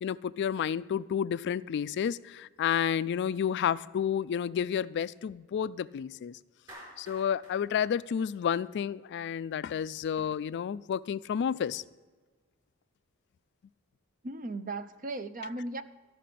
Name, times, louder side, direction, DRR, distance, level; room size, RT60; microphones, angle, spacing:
voice 1, 0.0-6.4 7.0-11.8, left 8 dB, 55° left, 18 dB, 0.3 m, -31 dB
Clapping, 6.7-9.0, right 1 dB, 20° right, 4.3 m, -51 dB
voice 2, 14.2-15.8, right 2 dB, 40° right, 12 dB, 0.6 m, -37 dB
13.0 x 5.9 x 8.4 m, 1.4 s
head